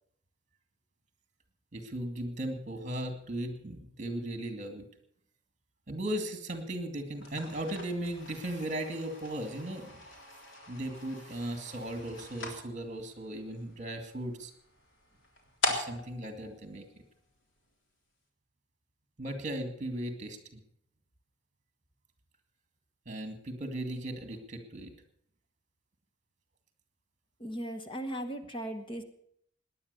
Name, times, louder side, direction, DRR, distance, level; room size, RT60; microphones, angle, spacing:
voice 1, 1.7-4.9 5.9-10.0 10.7-14.5 15.7-16.8 19.2-20.6 23.1-24.9, right 1 dB, 40° right, 7 dB, 2.3 m, -37 dB
sound 1, 7.1-17.5, left 2 dB, 70° left, 3.6 m, -41 dB
voice 2, 27.4-29.0, right 1 dB, 25° left, 4 dB, 1.2 m, -37 dB
18.0 x 10.5 x 6.9 m, 0.68 s
head